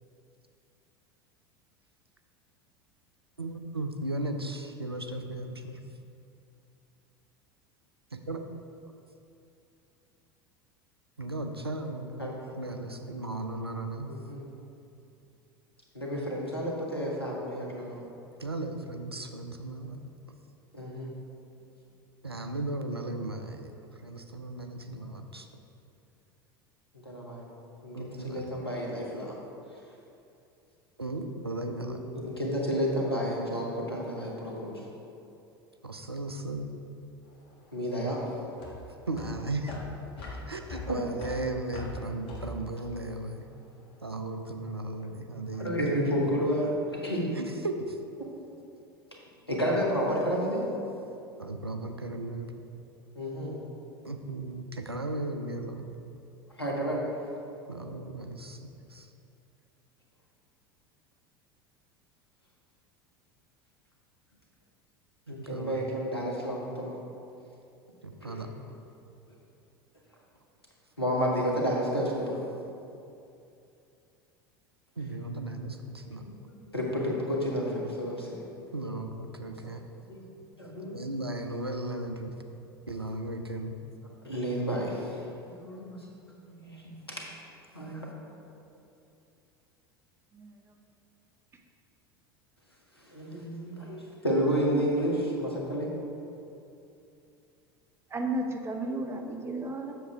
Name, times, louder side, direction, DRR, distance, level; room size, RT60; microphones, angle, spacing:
voice 1, 3.4-5.8 8.1-8.4 11.2-14.1 18.4-20.0 22.2-23.7 24.0-25.5 27.9-28.5 31.0-32.0 35.8-36.7 39.1-39.8 40.5-43.4 44.0-46.1 47.3-48.0 51.4-52.5 54.0-55.9 57.7-58.6 58.9-59.1 65.3-65.9 68.0-68.5 75.0-76.2 78.7-79.8 80.9-82.3 82.9-83.7, right 2 dB, 90° right, 6 dB, 0.5 m, -36 dB
voice 2, 14.1-14.5 15.9-18.0 20.7-21.1 27.0-27.4 27.8-29.3 31.8-34.8 37.7-38.2 40.2-40.3 40.9-41.0 45.5-47.3 49.5-50.6 53.1-53.6 56.6-57.0 65.3-66.9 68.2-68.4 71.0-72.4 76.2-78.3 80.1-80.2 80.6-81.0 84.2-85.0 85.6-86.0 86.5-86.9 87.7-87.9 93.1-95.9, equal, 90° left, -3 dB, 1.3 m, -31 dB
sound 1, 37.2-43.8, left 2 dB, 45° left, 1.5 m, -42 dB
voice 3, 94.7-95.1 98.1-99.9, right 2 dB, 20° right, 3 dB, 0.8 m, -34 dB
7.7 x 6.4 x 3.5 m, 2.7 s
figure-of-eight pair, 75°, 13 cm